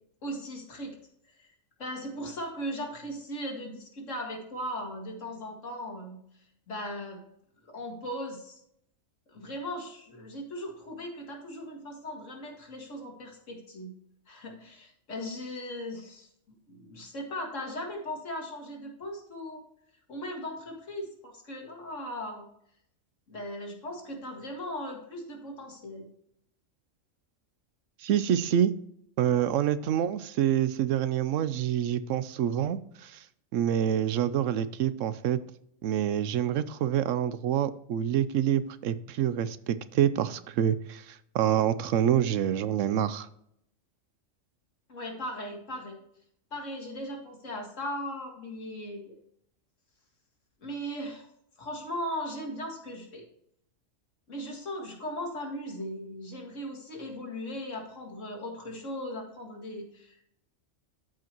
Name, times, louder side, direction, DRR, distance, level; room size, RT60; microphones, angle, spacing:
voice 1, 0.2-1.0 1.4-1.5 1.8-6.2 6.7-7.2 7.6-8.6 9.3-13.9 14.3-16.3 16.7-19.6 20.1-22.5 23.3-26.1 44.9-46.0 46.5-49.1 50.6-51.3 51.6-53.3 54.3-60.2, equal, 70° left, 1 dB, 2.3 m, -38 dB
voice 2, 28.0-28.7 29.2-33.2 33.5-35.4 35.8-43.3, right 10 dB, 75° right, 14 dB, 0.9 m, -27 dB
13.5 x 5.0 x 3.0 m, 0.72 s
omnidirectional pair, 1.3 m